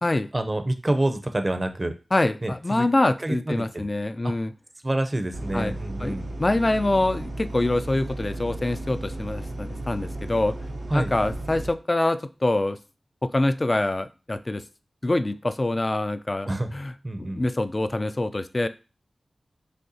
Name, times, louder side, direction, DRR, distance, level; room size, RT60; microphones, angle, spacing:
voice 1, 0.3-1.9 2.4-2.9 3.2-3.8 4.2-4.3 4.8-6.3 10.9-11.1 16.5-16.7 17.0-17.4, right 1 dB, 35° right, 7 dB, 0.6 m, -27 dB
voice 2, 2.1-4.5 5.5-5.7 6.0-10.5 10.9-12.8 13.2-14.6 15.0-16.9 17.2-18.7, left 2 dB, 35° left, 11 dB, 0.4 m, -25 dB
sound 1, 5.3-11.7, right 1 dB, 90° right, 0.8 m, -34 dB
6.4 x 2.3 x 2.7 m, 0.32 s
cardioid pair, 45°, 0 cm